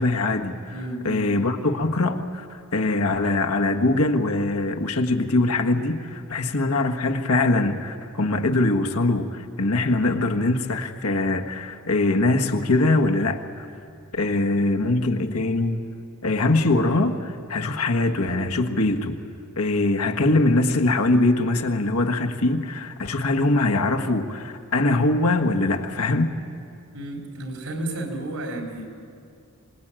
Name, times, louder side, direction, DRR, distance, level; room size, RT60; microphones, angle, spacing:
voice 1, 0.0-0.7 1.0-13.7 14.1-15.8 16.2-19.2 19.6-26.3, left 2 dB, 80° left, 4 dB, 1.5 m, -22 dB
voice 2, 0.7-1.3 26.9-28.9, right 1 dB, 85° right, 0 dB, 4.3 m, -32 dB
26.0 x 20.0 x 9.0 m, 2.4 s
head